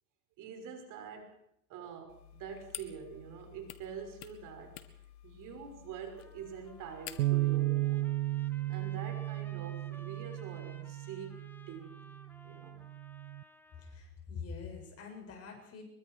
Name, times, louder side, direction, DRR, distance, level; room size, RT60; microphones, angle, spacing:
voice 1, 0.4-1.3 1.7-4.8 5.2-8.1 8.7-12.0 12.4-12.8, right 7 dB, 40° right, 4 dB, 6.2 m, -45 dB
sound 1, 2.1-7.5, left 12 dB, 65° left, 2.2 m, -50 dB
Trumpet, 6.1-14.0, left 1 dB, 5° left, 1.8 m, -57 dB
Bass guitar, 7.2-13.4, right 17 dB, 80° right, 0.7 m, -34 dB
voice 2, 13.8-15.8, left 5 dB, 30° left, 3 dB, 6.6 m, -45 dB
24.5 x 23.0 x 4.8 m, 0.74 s
hypercardioid pair, 125°, 49 cm